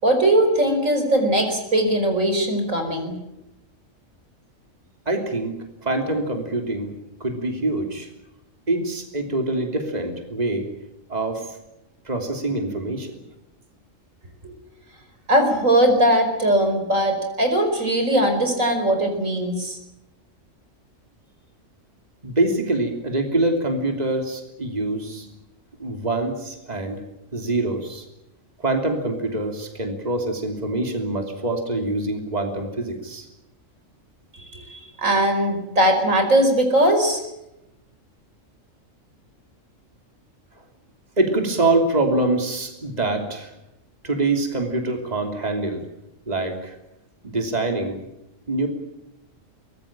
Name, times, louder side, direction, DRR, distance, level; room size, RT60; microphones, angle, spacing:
voice 1, 0.0-3.2 15.3-19.8 34.5-37.2, right 1 dB, 80° right, 6 dB, 5.3 m, -20 dB
voice 2, 5.0-6.9 7.2-8.1 8.7-10.7 11.1-11.6 12.0-13.1 22.2-25.3 25.8-27.0 27.3-28.0 28.6-33.3 41.2-43.5 44.0-45.9 46.3-46.8 47.2-48.0 48.5-48.7, right 2 dB, 30° right, 4 dB, 3.2 m, -25 dB
23.5 x 20.5 x 8.8 m, 0.89 s
omnidirectional pair, 1.4 m